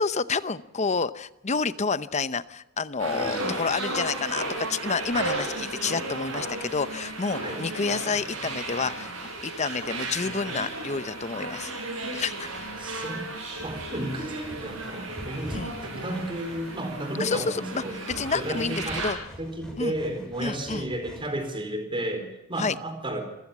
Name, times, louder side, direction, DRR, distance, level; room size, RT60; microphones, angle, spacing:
voice 1, 0.0-9.1 9.4-11.7 12.1-12.5 15.5-15.8 17.2-19.2 19.8-20.0 20.4-20.9 22.6-22.8, left 4 dB, 35° left, 15 dB, 0.8 m, -29 dB
voice 2, 3.0-3.5 7.4-7.6 12.8-18.0 18.3-19.0 19.4-23.2, right 1 dB, 25° right, 6 dB, 4.4 m, -33 dB
sound 1, 3.0-19.1, right 2 dB, 75° right, 7.0 m, -34 dB
sound 2, 12.5-21.5, equal, 5° left, 5.5 m, -45 dB
27.5 x 15.5 x 7.3 m, 0.93 s
head